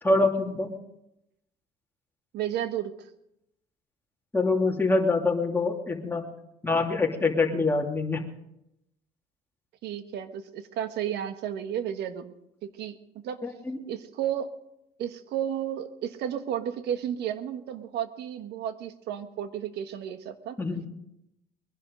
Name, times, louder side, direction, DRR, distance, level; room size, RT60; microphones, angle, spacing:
voice 1, 0.0-0.7 4.3-6.2 6.6-8.2 13.4-13.8 20.6-20.9, left 3 dB, 10° left, 0 dB, 2.8 m, -25 dB
voice 2, 2.3-3.1 9.8-12.3 12.6-13.0 13.2-13.4 13.9-14.5 15.0-20.6, right 10 dB, 75° right, 10 dB, 1.3 m, -32 dB
21.5 x 11.0 x 5.3 m, 0.84 s
cardioid pair, 110°, 17 cm